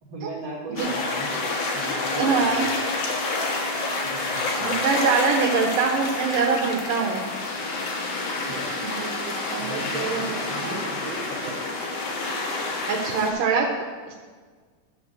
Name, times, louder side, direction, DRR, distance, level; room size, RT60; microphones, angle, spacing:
voice 1, 0.0-2.7 4.0-4.8 8.5-8.7 9.6-11.6, right 1 dB, 45° right, -4 dB, 1.6 m, -37 dB
sound 1, 0.8-13.3, left 3 dB, 55° left, 2.1 m, -28 dB
voice 2, 2.2-2.7 4.6-7.2 8.8-10.2 10.6-10.8 12.9-13.7 14.1-14.2, right 5 dB, 80° right, 0 dB, 2.4 m, -24 dB
13.0 x 4.4 x 6.7 m, 1.5 s
omnidirectional pair, 3.9 m